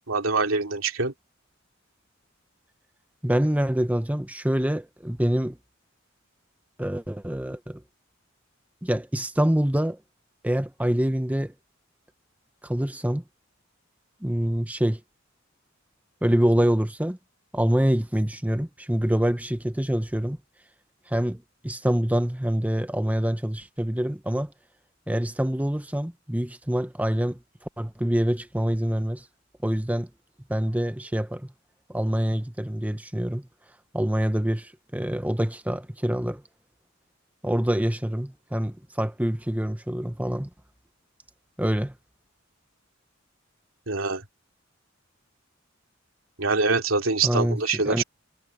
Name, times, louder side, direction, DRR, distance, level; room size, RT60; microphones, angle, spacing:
voice 1, 0.1-1.1 43.9-44.2 46.4-48.0, right 4 dB, 80° right, 3.0 m, -24 dB
voice 2, 3.2-5.6 6.8-7.8 8.8-10.0 10.4-11.5 12.6-13.2 14.2-15.0 16.2-17.2 17.5-20.4 21.1-24.5 25.1-27.4 27.8-29.2 29.6-30.1 30.5-31.5 31.9-33.5 33.9-36.4 37.4-40.5 41.6-41.9 47.2-48.0, equal, 10° right, 1.0 m, -25 dB
head